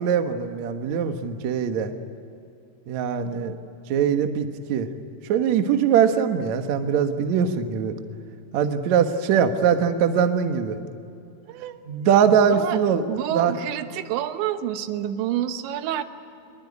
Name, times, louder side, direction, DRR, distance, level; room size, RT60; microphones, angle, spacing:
voice 1, 0.0-1.9 2.9-3.6 3.9-4.9 5.3-7.9 8.5-10.8 11.9-13.0 13.3-13.5, right 7 dB, 65° right, 7 dB, 1.8 m, -22 dB
voice 2, 11.5-11.8 12.5-12.8 13.1-16.0, right 11 dB, 85° right, 9 dB, 3.3 m, -28 dB
24.0 x 22.0 x 9.7 m, 2.6 s
omnidirectional pair, 5.1 m